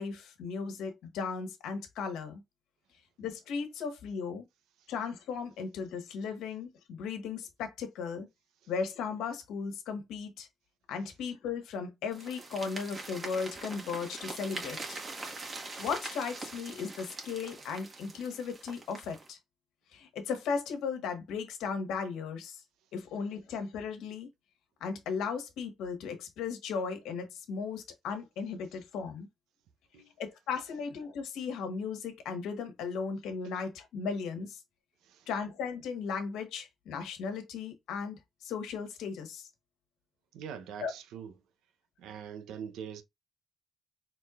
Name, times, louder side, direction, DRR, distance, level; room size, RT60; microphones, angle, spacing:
voice 1, 0.0-2.4 3.2-4.4 4.9-8.3 8.7-10.5 10.9-15.0 15.8-19.4 19.9-22.6 22.9-24.3 24.8-29.3 30.2-34.6 35.3-39.5 40.8-40.9, left 5 dB, 90° left, 1.4 m, -36 dB
sound 1, 12.1-19.3, right 3 dB, 35° right, 1.5 m, -43 dB
voice 2, 40.3-41.3 42.0-43.0, right 8 dB, 90° right, 0.7 m, -43 dB
4.6 x 3.7 x 2.4 m
cardioid pair, 90°, 0 cm